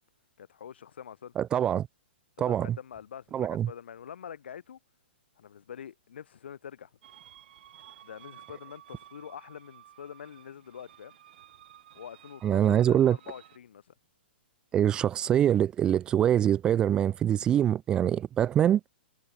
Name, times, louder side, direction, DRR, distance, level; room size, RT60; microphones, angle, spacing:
voice 1, 0.4-1.3 2.4-4.8 5.4-6.9 8.0-11.2 11.9-13.9, left 8 dB, 80° left, 3.3 m, -45 dB
voice 2, 1.4-1.9 2.4-2.8 3.3-3.7 12.4-13.2 14.7-18.8, right 10 dB, 15° right, 0.3 m, -24 dB
sound 1, 7.0-13.6, right 11 dB, 60° right, 7.4 m, -54 dB
hypercardioid pair, 160°, 6 cm